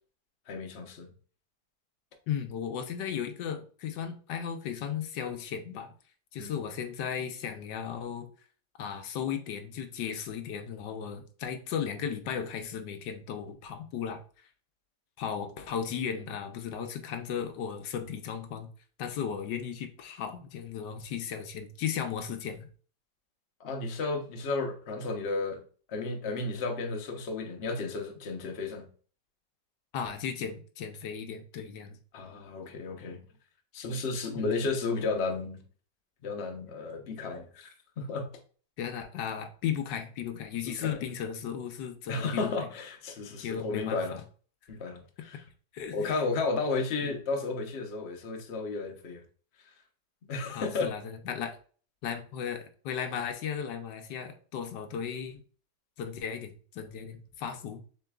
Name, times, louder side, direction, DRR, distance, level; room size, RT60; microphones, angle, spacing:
voice 1, 0.5-1.1 6.4-6.5 23.6-25.6 25.9-28.9 32.1-33.2 33.7-35.6 36.2-37.7 38.0-38.3 40.8-41.0 42.1-44.2 44.7-45.4 45.9-49.2 50.2-50.9, left 3 dB, 50° left, 0.9 m, -33 dB
voice 2, 2.3-5.9 6.3-8.3 8.8-14.5 15.2-18.7 19.0-22.7 29.9-32.0 34.3-34.5 38.8-42.5 43.4-44.2 45.7-46.1 47.0-47.1 50.5-51.6 52.0-55.4 56.0-57.8, left 8 dB, 85° left, 1.3 m, -36 dB
6.8 x 3.2 x 2.3 m
omnidirectional pair, 1.8 m